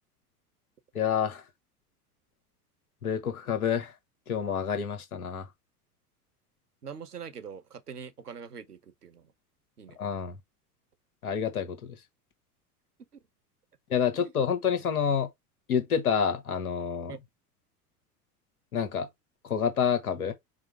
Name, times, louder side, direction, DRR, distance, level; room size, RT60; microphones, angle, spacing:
voice 1, 0.9-1.4 3.0-3.9 4.3-5.5 10.0-10.4 11.2-12.0 13.9-15.3 15.7-17.2 18.7-19.1 19.4-20.3, left 7 dB, 70° left, 1.3 m, -28 dB
voice 2, 6.8-9.3 9.8-10.0 17.1-17.2, right 7 dB, 85° right, 0.8 m, -43 dB
5.0 x 2.0 x 4.5 m
figure-of-eight pair, 80°, 46 cm